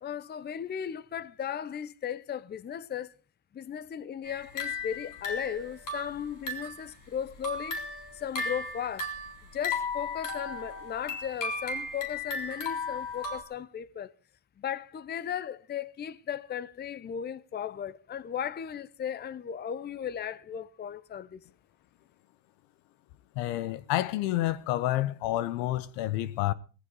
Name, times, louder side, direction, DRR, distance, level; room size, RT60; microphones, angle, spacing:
voice 1, 0.0-3.1 3.5-7.8 8.2-9.1 9.5-14.1 14.6-21.4, left 9 dB, 20° left, 0.7 m, -36 dB
sound 1, 4.2-6.9 7.3-13.4, left 3 dB, 40° left, 3.8 m, -35 dB
voice 2, 23.3-26.5, left 15 dB, 75° left, 1.1 m, -29 dB
18.0 x 14.5 x 4.1 m
supercardioid pair, 95°, 46 cm